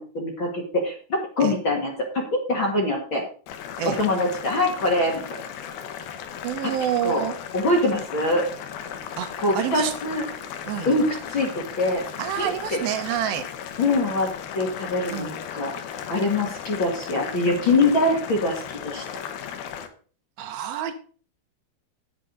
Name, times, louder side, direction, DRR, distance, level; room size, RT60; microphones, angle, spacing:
voice 1, 0.0-3.2 4.0-5.4 7.0-7.3 7.5-8.5 9.4-10.2 10.9-12.0 12.4-12.8 13.8-14.3 14.5-15.7 16.1-19.0, left 2 dB, 40° left, -1 dB, 2.1 m, -24 dB
Boiling, 3.5-19.9, left 8 dB, 75° left, 2.9 m, -36 dB
voice 2, 6.4-7.4 9.2-9.9 10.7-10.9 12.2-13.4 15.1-15.4 17.7-17.9 20.4-20.9, right 10 dB, 75° right, 7 dB, 2.8 m, -28 dB
10.5 x 9.0 x 3.9 m, 0.41 s
omnidirectional pair, 4.4 m